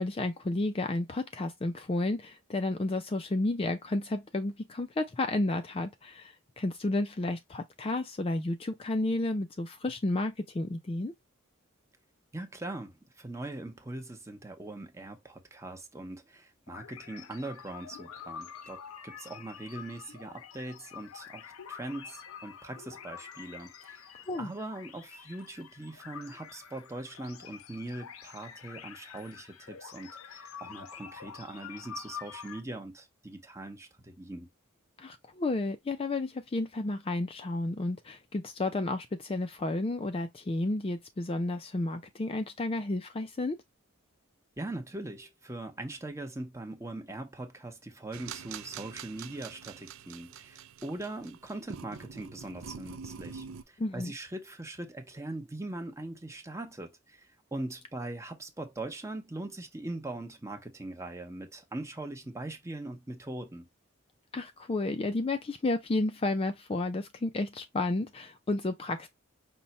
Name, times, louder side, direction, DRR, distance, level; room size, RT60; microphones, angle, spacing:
voice 1, 0.0-11.1 24.3-24.5 35.0-43.6 53.8-54.1 64.3-69.1, left 2 dB, 25° left, 0.3 m, -32 dB
voice 2, 12.3-34.5 44.6-63.7, right 2 dB, 15° right, 0.8 m, -41 dB
sound 1, 16.7-32.6, left 7 dB, 85° left, 0.6 m, -47 dB
sound 2, 48.1-53.6, right 7 dB, 75° right, 0.4 m, -45 dB
5.4 x 2.2 x 4.1 m
head